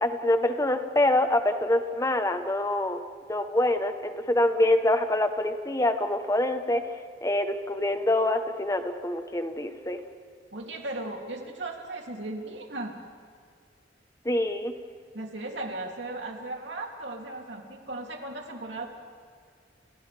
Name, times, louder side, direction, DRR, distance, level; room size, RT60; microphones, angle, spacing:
voice 1, 0.0-3.0 3.3-6.8 7.2-10.0 14.2-14.7, left 1 dB, 20° left, 8 dB, 0.9 m, -25 dB
voice 2, 10.5-13.0 15.1-18.9, right 2 dB, 90° right, 1 dB, 2.8 m, -36 dB
29.5 x 29.0 x 3.4 m, 2.1 s
head